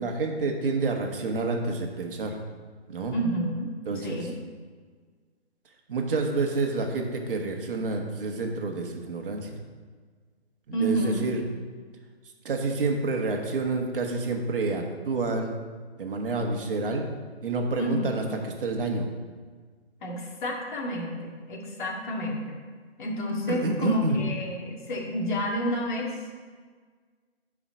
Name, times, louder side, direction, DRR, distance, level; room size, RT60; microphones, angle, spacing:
voice 1, 0.0-2.4 2.9-3.2 3.8-4.3 5.9-9.6 10.7-11.4 12.4-15.5 16.0-17.1 17.4-19.1 23.5-24.2, right 3 dB, 55° right, 2 dB, 1.5 m, -28 dB
voice 2, 3.1-3.7 4.0-4.4 10.7-11.2 17.8-18.2 20.0-22.6 23.0-26.2, equal, 45° left, -2 dB, 2.2 m, -30 dB
11.5 x 5.0 x 5.1 m, 1.6 s
hypercardioid pair, 150°, 33 cm